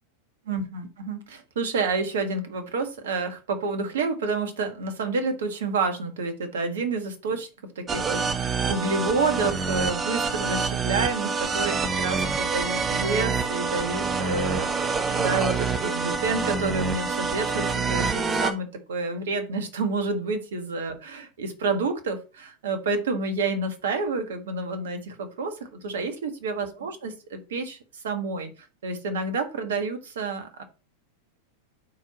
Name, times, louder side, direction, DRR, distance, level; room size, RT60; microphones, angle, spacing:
voice 1, 0.4-7.5 7.7-28.5 28.8-30.6, right 3 dB, 60° right, 8 dB, 1.5 m, -29 dB
sound 1, 7.9-18.5, right 5 dB, 20° right, 0.9 m, -26 dB
12.0 x 4.6 x 2.9 m, 0.33 s
figure-of-eight pair, 90°, 0 cm